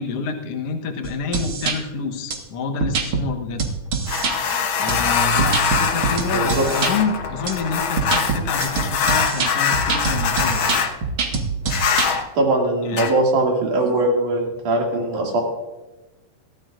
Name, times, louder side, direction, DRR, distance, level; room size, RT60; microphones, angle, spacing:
voice 1, 0.0-3.7 4.8-10.8 12.8-13.1, left 5 dB, 60° left, 4 dB, 2.0 m, -28 dB
sound 1, 1.0-1.8 2.3-2.4 2.8-3.2 3.6-4.3 4.9-6.9 7.5-7.6 8.0-12.1, right 5 dB, 50° right, 2.0 m, -24 dB
sound 2, 4.1-10.9 11.7-12.2 12.9-13.1, left 6 dB, 75° left, 1.1 m, -23 dB
voice 2, 6.3-6.6 12.4-15.4, right 2 dB, 70° right, 0 dB, 3.9 m, -20 dB
23.0 x 13.0 x 2.6 m, 1.1 s
omnidirectional pair, 3.7 m